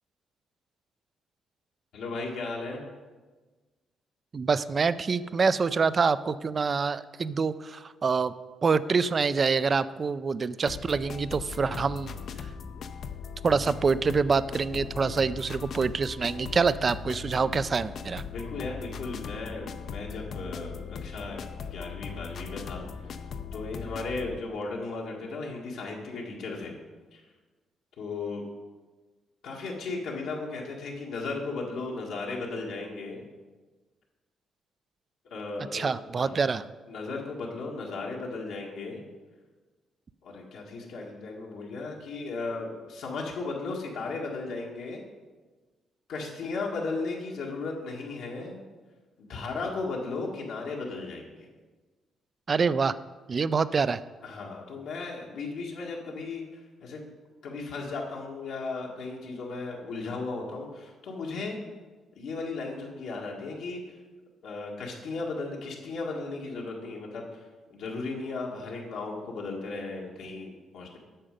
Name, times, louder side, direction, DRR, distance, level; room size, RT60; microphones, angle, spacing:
voice 1, 1.9-2.8 18.3-23.2 23.5-26.7 27.1-27.2 28.0-28.4 29.4-33.2 35.2-35.9 36.1-36.4 36.9-39.0 40.2-45.0 46.1-48.6 49.2-51.5 54.2-57.0 57.4-61.6 62.1-63.9 64.4-71.0, left 3 dB, 80° left, -2 dB, 1.5 m, -36 dB
voice 2, 4.3-8.3 8.6-12.2 13.4-18.2 35.7-36.6 52.5-52.9 53.3-54.0, right 5 dB, 40° right, 16 dB, 0.3 m, -26 dB
sound 1, 10.7-24.4, left 6 dB, 60° left, 0.5 m, -39 dB
8.8 x 6.4 x 5.1 m, 1.3 s
cardioid pair, 90°, 0 cm